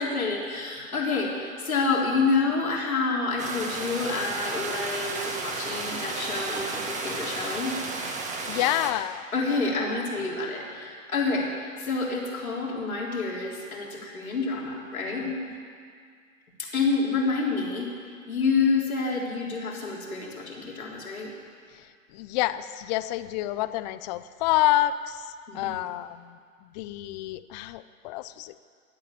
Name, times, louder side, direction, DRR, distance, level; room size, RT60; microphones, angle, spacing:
voice 1, 0.0-7.8 9.3-15.4 16.6-17.9 18.3-21.3 25.5-25.8, left 4 dB, 85° left, -2 dB, 3.5 m, -28 dB
sound 1, 3.4-8.9, right 3 dB, 15° right, 1.6 m, -33 dB
voice 2, 8.5-9.2 21.7-21.9 22.1-28.6, left 14 dB, 30° left, 14 dB, 0.5 m, -28 dB
15.5 x 9.9 x 7.6 m, 2.1 s
hypercardioid pair, 115°, 41 cm